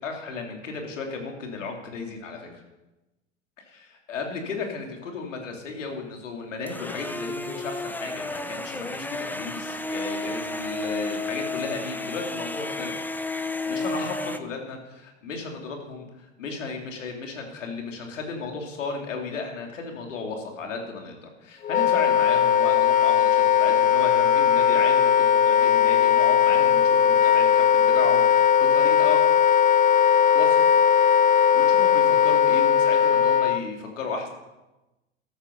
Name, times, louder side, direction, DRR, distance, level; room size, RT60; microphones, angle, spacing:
voice 1, 0.0-2.6 3.6-13.0 13.6-29.2 30.3-30.6 31.5-34.3, left 4 dB, 80° left, 2 dB, 3.3 m, -34 dB
Handheld Blender, 6.7-14.4, left 2 dB, 5° left, 1.0 m, -32 dB
Wind instrument woodwind instrument, 21.6-33.6, left 8 dB, 20° left, 0.6 m, -19 dB
14.0 x 13.0 x 5.5 m, 1.0 s
hypercardioid pair, 85°, 37 cm